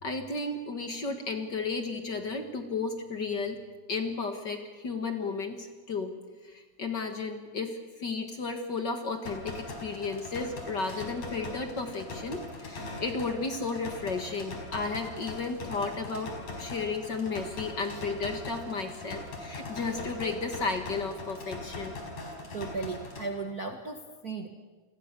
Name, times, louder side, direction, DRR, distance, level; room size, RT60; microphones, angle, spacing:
voice 1, 0.0-3.6 3.9-6.1 6.4-21.9, left 4 dB, 40° left, 5 dB, 2.0 m, -33 dB
sound 1, 9.3-23.3, left 2 dB, 70° left, 6.0 m, -41 dB
voice 2, 22.5-24.5, right 4 dB, 45° right, 4 dB, 1.4 m, -36 dB
29.0 x 21.5 x 6.9 m, 1.4 s
omnidirectional pair, 3.3 m